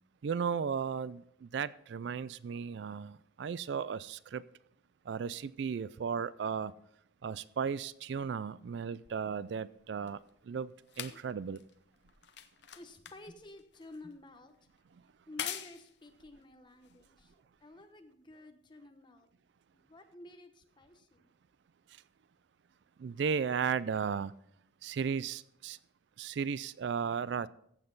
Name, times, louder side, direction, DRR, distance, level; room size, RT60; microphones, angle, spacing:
voice 1, 0.2-4.4 5.1-6.7 7.2-11.6 23.0-24.3 24.8-25.8 26.2-27.5, right 6 dB, 60° right, 0.3 m, -35 dB
sound 1, 9.0-17.7 18.5-18.6, left 10 dB, 60° left, 0.7 m, -47 dB
voice 2, 12.8-14.5 15.3-19.3 19.7-21.3, left 2 dB, 25° left, 1.0 m, -52 dB
14.5 x 7.7 x 3.9 m
head